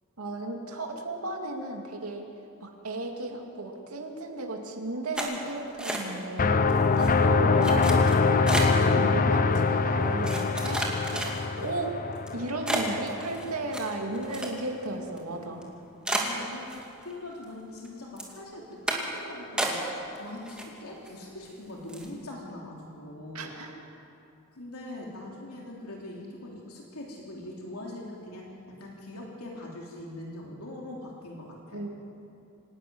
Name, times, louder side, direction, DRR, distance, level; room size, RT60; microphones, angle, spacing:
voice 1, 0.2-2.3 2.6-12.0 12.3-15.7 23.3-23.8 31.7-31.9, right 2 dB, 90° right, 2 dB, 2.5 m, -35 dB
sound 1, 5.1-6.4 6.7-7.1 7.6-8.9 9.5-9.6 10.2-11.7 12.2-12.3 12.7-14.9 15.2-15.3 15.6-15.7 16.0-17.1 17.4-17.9 18.2-18.4 18.9-19.2 19.6-20.2 20.4-21.1 21.4-21.6 21.9-22.1, right 1 dB, 5° right, 2.4 m, -32 dB
sound 2, 6.4-13.1, left 4 dB, 40° left, 0.7 m, -24 dB
voice 2, 16.0-23.5 24.5-31.8, left 1 dB, 90° left, -2 dB, 3.1 m, -42 dB
26.0 x 11.5 x 9.4 m, 2.6 s
head